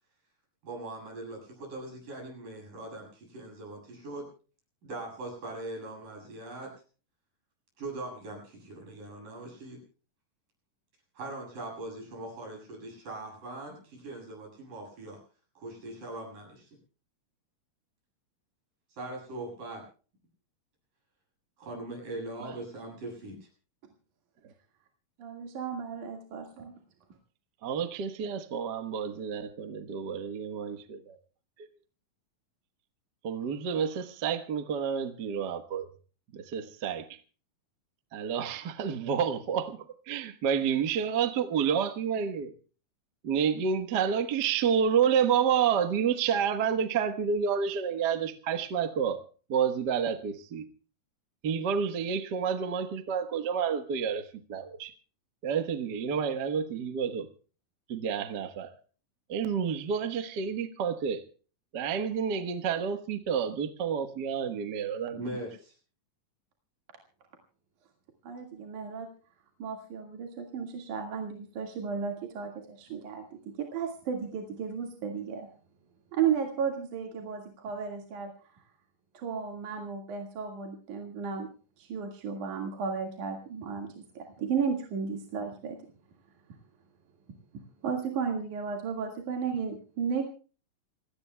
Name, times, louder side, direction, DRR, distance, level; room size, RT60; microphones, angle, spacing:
voice 1, 0.6-4.3 4.8-6.7 7.8-9.8 11.2-15.2 15.6-16.5 19.0-19.8 21.6-23.4 65.1-65.7, right 2 dB, 85° right, 9.5 m, -41 dB
voice 2, 25.2-26.7 68.2-69.1 69.6-75.5 76.1-78.3 79.1-81.5 81.8-85.8 87.8-90.2, right 6 dB, 70° right, 3.4 m, -34 dB
voice 3, 27.6-31.2 31.6-31.7 33.2-35.9 36.3-37.2 38.1-42.5 43.2-49.2 49.5-50.7 51.4-54.9 55.4-57.3 57.9-58.7 59.3-61.2 61.7-65.2, right 7 dB, 55° right, 1.2 m, -29 dB
28.5 x 17.5 x 2.2 m
omnidirectional pair, 3.7 m